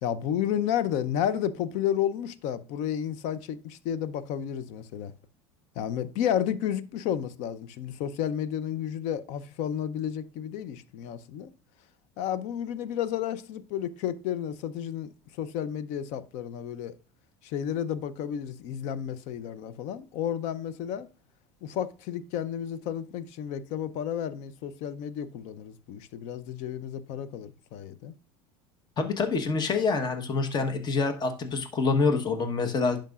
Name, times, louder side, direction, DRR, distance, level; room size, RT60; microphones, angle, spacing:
voice 1, 0.0-5.1 5.8-11.5 12.2-15.1 15.4-17.0 17.4-21.1 21.6-28.1, left 9 dB, 60° left, 0.7 m, -32 dB
voice 2, 29.0-33.0, left 4 dB, 30° left, 1.2 m, -26 dB
11.0 x 5.1 x 2.4 m
supercardioid pair, 115°, 14 cm